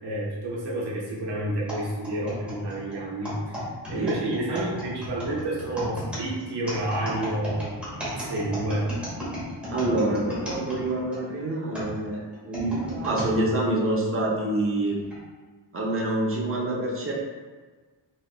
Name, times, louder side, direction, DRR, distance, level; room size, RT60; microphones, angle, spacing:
voice 1, 0.0-3.6 3.9-8.9, right 1 dB, 65° right, -5 dB, 0.7 m, -30 dB
sound 1, 1.7-11.2 11.7-13.3 14.0-14.1 14.9-15.2, equal, 5° right, 0.8 m, -34 dB
voice 2, 9.7-15.0 15.7-17.1, right 1 dB, 30° right, -3 dB, 0.6 m, -26 dB
3.2 x 2.9 x 2.4 m, 1.4 s
wide cardioid pair, 175°, 44 cm